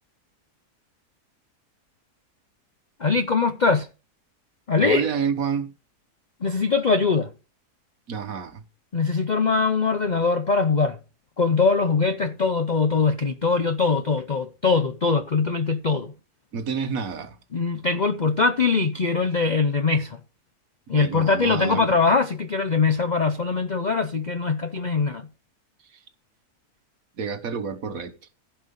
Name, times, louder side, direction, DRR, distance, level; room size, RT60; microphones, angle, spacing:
voice 1, 3.0-3.9 4.7-5.1 6.4-7.3 8.9-11.0 11.4-16.1 17.5-20.2 20.9-25.3, left 4 dB, 50° left, 0.5 m, -22 dB
voice 2, 4.8-5.7 8.1-8.6 16.5-17.4 20.9-22.0 27.2-28.2, right 6 dB, 65° right, 1.6 m, -29 dB
15.5 x 5.6 x 5.3 m
omnidirectional pair, 1.6 m